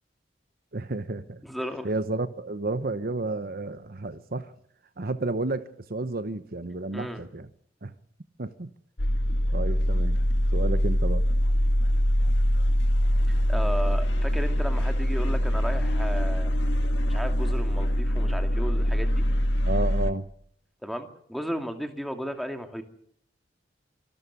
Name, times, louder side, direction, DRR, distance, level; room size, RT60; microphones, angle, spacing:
voice 1, 0.7-1.4 1.8-4.5 5.0-7.5 7.8-7.9 8.4-8.7 9.5-10.2 10.5-11.2 19.6-20.3, right 2 dB, 50° right, 1.0 m, -31 dB
voice 2, 1.4-1.9 6.9-7.3 13.3-16.5 17.1-19.3 20.8-22.8, equal, ahead, 2.3 m, -34 dB
sound 1, 9.0-20.1, equal, 70° left, 1.9 m, -23 dB
25.5 x 13.0 x 9.8 m
head